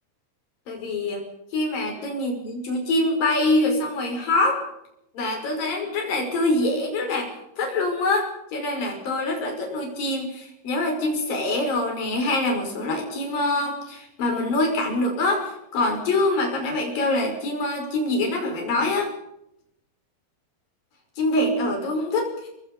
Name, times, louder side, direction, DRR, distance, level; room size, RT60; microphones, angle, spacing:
voice 1, 0.7-1.2 1.5-4.6 5.2-19.1 21.2-22.5, left 2 dB, 50° left, 2 dB, 7.0 m, -25 dB
25.5 x 20.0 x 5.3 m, 0.81 s
omnidirectional pair, 5.2 m